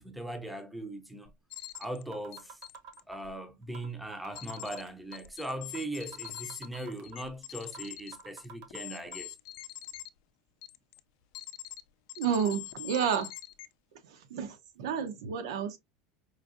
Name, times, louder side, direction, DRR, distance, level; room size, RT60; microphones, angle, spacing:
voice 1, 0.0-1.3 1.8-2.6 3.1-9.4, right 1 dB, ahead, 0.5 m, -39 dB
sound 1, 1.2-1.3 1.7-1.8 2.1-3.3 3.7-5.3 5.7-5.8 6.1-7.3 7.7-7.9 8.1-9.2, right 6 dB, 55° right, 0.9 m, -48 dB
sound 2, 1.5-2.0 2.3-3.0 4.4-4.8 5.1-10.1 10.6-11.0 11.3-11.8 12.1-13.7, left 16 dB, 55° left, 0.4 m, -44 dB
voice 2, 12.2-13.3 14.0-15.8, right 7 dB, 85° right, 0.9 m, -31 dB
4.9 x 2.6 x 2.5 m
supercardioid pair, 170°, 3 cm